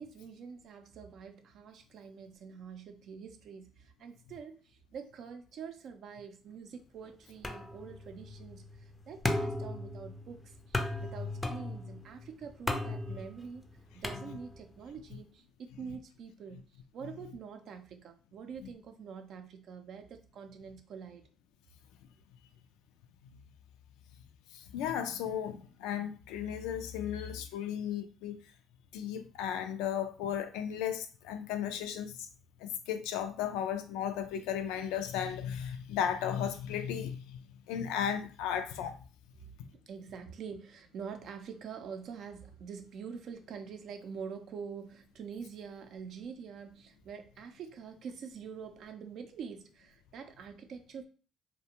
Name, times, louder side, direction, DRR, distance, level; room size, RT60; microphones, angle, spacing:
voice 1, 0.0-13.6 13.9-16.6 16.9-21.3 39.4-51.0, right 6 dB, 65° right, 0.4 m, -46 dB
sound 1, 7.4-14.8, left 2 dB, 20° left, 0.4 m, -37 dB
voice 2, 24.5-28.4 28.9-32.3 32.6-37.4 37.7-39.0, left 9 dB, 85° left, 0.3 m, -35 dB
2.5 x 2.2 x 2.8 m
supercardioid pair, 75°, 0 cm